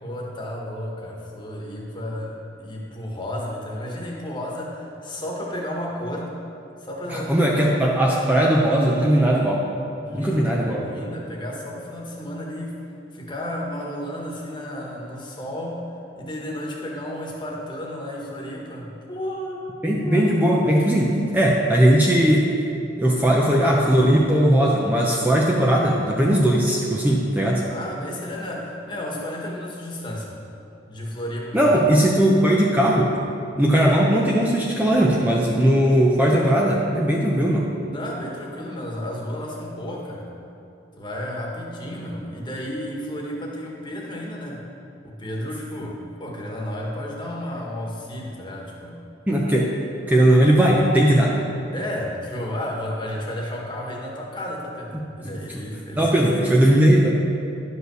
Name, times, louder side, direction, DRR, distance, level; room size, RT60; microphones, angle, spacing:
voice 1, 0.0-6.4 6.8-7.3 10.0-12.8 13.1-19.6 20.0-20.6 27.6-30.4 30.9-31.7 37.9-40.3 40.9-44.6 45.0-49.0 51.7-56.6, left 1 dB, 25° left, -2 dB, 1.5 m, -32 dB
voice 2, 7.1-9.6 10.1-10.8 19.8-22.5 23.0-27.6 31.5-33.1 33.5-37.6 49.3-49.7 50.1-51.3 56.0-57.1, right 1 dB, 10° right, -3 dB, 0.7 m, -18 dB
11.0 x 5.5 x 6.4 m, 2.8 s
head